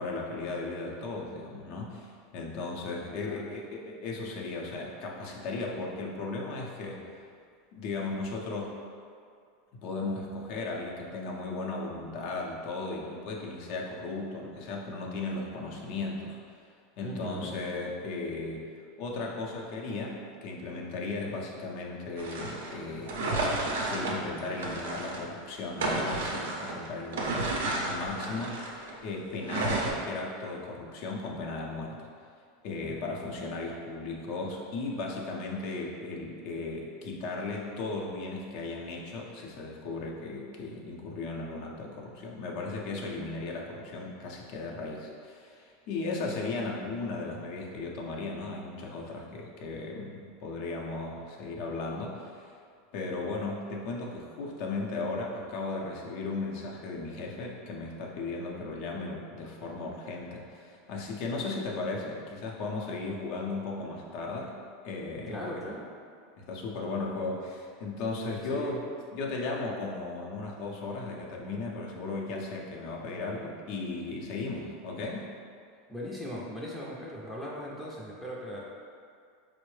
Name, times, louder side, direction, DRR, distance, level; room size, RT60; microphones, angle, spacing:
voice 1, 0.0-7.0 7.7-8.8 9.7-16.4 17.0-18.7 19.0-23.5 23.9-32.1 32.6-52.5 52.9-64.5 64.8-65.6 66.4-68.8 69.1-75.3, left 3 dB, 60° left, -1 dB, 0.6 m, -36 dB
voice 2, 3.2-3.5 17.0-17.5 32.8-33.2 65.3-65.8 68.4-68.8 75.9-78.6, equal, 5° left, -5 dB, 0.5 m, -39 dB
sound 1, 22.2-25.3 25.6-29.0 29.4-29.9, right 2 dB, 85° right, 0.5 m, -32 dB
4.4 x 2.0 x 3.1 m, 2.2 s
supercardioid pair, 115°, 0 cm